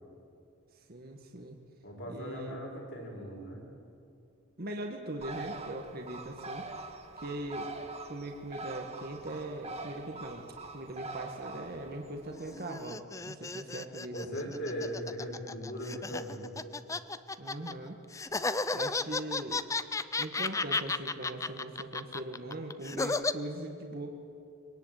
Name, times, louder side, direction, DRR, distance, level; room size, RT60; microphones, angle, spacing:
voice 1, 0.9-1.6 2.1-2.6 4.6-6.6 7.2-7.7 8.1-10.5 10.7-14.5 17.4-18.0 18.7-19.6 20.2-24.1, right 1 dB, 45° right, 2 dB, 1.7 m, -40 dB
voice 2, 1.8-3.6 14.1-16.6, equal, 60° left, 0 dB, 5.5 m, -39 dB
Bird, 5.2-12.6, right 3 dB, 30° right, 1.5 m, -44 dB
sound 1, 12.3-17.7 18.1-23.3, left 3 dB, 15° left, 0.5 m, -33 dB
23.0 x 18.5 x 9.1 m, 2.5 s
head